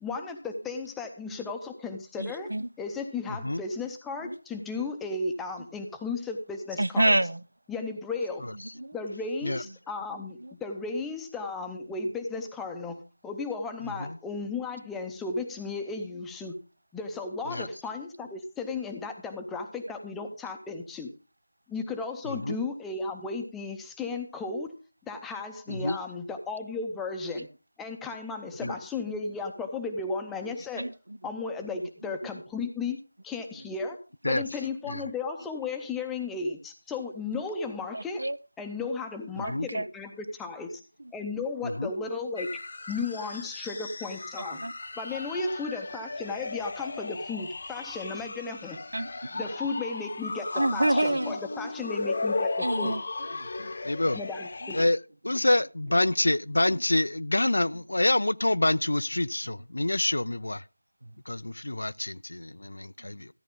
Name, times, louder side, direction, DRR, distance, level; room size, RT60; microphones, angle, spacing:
voice 1, 0.0-2.5 2.8-7.2 7.7-8.5 8.9-16.6 16.9-21.1 21.7-24.7 25.1-27.5 27.8-30.9 31.2-34.0 34.3-38.2 38.6-40.8 41.1-42.5 42.9-44.6 45.0-48.8 49.3-53.0 54.1-54.8, left 4 dB, 5° left, 0.6 m, -35 dB
voice 2, 2.2-2.7 4.2-4.4 6.8-7.4 8.8-8.9 10.2-10.5 30.8-31.2 37.9-38.4 39.4-39.9 44.4-44.7 48.9-49.5 50.5-51.4 52.6-53.0 53.3-53.7 54.6-54.7 56.7-56.8 61.0-61.1 63.0-63.1, right 1 dB, 85° right, 0.6 m, -29 dB
voice 3, 22.3-22.6 25.7-26.0 28.6-28.8 34.2-34.4 34.9-35.0 39.5-39.7 41.6-41.9 53.8-54.2 54.7-55.0 55.2-60.6 61.3-63.3, left 1 dB, 80° left, 0.4 m, -27 dB
sound 1, 42.4-54.8, left 3 dB, 40° left, 0.9 m, -35 dB
13.5 x 9.7 x 3.7 m
figure-of-eight pair, 175°, 0 cm